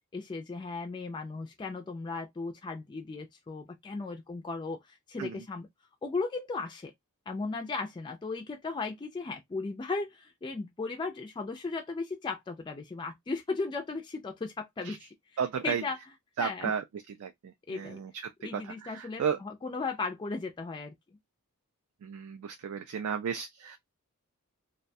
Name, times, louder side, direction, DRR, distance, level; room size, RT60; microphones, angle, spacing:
voice 1, 0.1-5.7 6.0-6.9 7.3-15.1 15.6-16.0 16.4-16.7 17.7-18.0 18.4-20.9, left 3 dB, 20° left, 0.3 m, -36 dB
voice 2, 15.4-15.8 16.4-16.8 17.2-19.4 22.0-23.8, right 7 dB, 65° right, 0.3 m, -34 dB
2.3 x 2.2 x 2.6 m
head